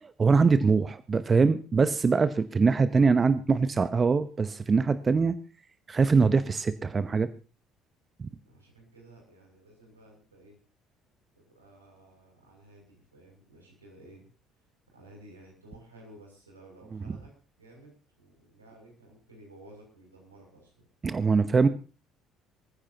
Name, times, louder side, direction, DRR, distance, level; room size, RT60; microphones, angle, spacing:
voice 1, 0.0-5.4 5.9-7.3 8.2-8.3 21.0-21.7, right 4 dB, 30° right, 13 dB, 0.9 m, -23 dB
voice 2, 8.4-10.5 11.3-14.3 14.5-17.3 17.6-20.8, right 1 dB, 85° right, -1 dB, 6.7 m, -54 dB
24.0 x 15.0 x 3.0 m, 0.35 s
figure-of-eight pair, 55°, 0 cm